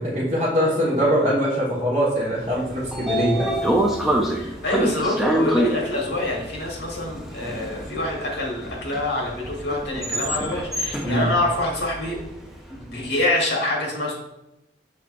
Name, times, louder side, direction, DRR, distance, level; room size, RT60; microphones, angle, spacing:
voice 1, 0.0-3.5 11.0-11.3, equal, 35° right, -10 dB, 1.2 m, -22 dB
Train / Sliding door, 2.5-12.6, right 1 dB, ahead, 0.4 m, -26 dB
voice 2, 4.3-12.2 12.9-14.1, left 1 dB, 70° left, -1 dB, 1.3 m, -26 dB
5.7 x 3.7 x 2.5 m, 0.89 s
head